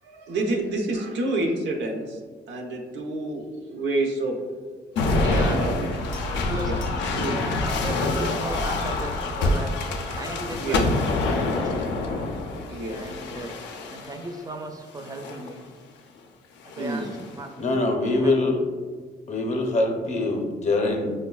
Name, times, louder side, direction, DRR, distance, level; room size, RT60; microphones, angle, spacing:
voice 1, 0.0-2.2 2.5-3.4 3.7-4.4 5.3-5.9 6.6-6.8 7.2-7.4 8.1-8.3 10.6-10.8 12.7-13.0 16.8-17.1, right 2 dB, 85° right, 1 dB, 0.6 m, -28 dB
sound 1, 5.0-14.3 15.0-15.5 16.6-17.3, left 2 dB, 90° left, 0.4 m, -26 dB
voice 2, 5.1-5.6 6.5-9.7 10.1-10.8 11.1-11.9 12.8-13.6 13.9-15.7 16.6-17.1 17.4-17.5 18.1-18.7, right 2 dB, 20° right, 5 dB, 0.4 m, -36 dB
voice 3, 17.6-18.6 19.3-21.1, left 2 dB, 40° left, 3 dB, 0.6 m, -23 dB
4.8 x 2.1 x 2.2 m, 1.5 s
cardioid pair, 90°, 18 cm